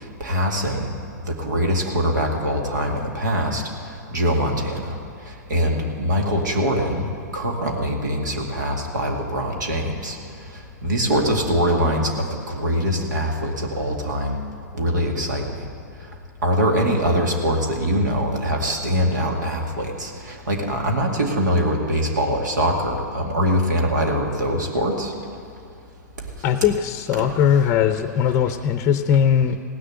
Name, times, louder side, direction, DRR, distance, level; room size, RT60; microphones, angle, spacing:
voice 1, 0.2-0.9 1.4-3.6 4.1-5.0 5.5-7.1 7.3-10.2 10.8-12.1 12.5-14.4 14.7-15.6 16.4-25.1 27.2-27.3, equal, 80° right, 1 dB, 2.2 m, -23 dB
voice 2, 26.4-29.6, left 8 dB, 30° left, 9 dB, 0.6 m, -19 dB
17.0 x 6.7 x 9.1 m, 2.6 s
hypercardioid pair, 115°, 10 cm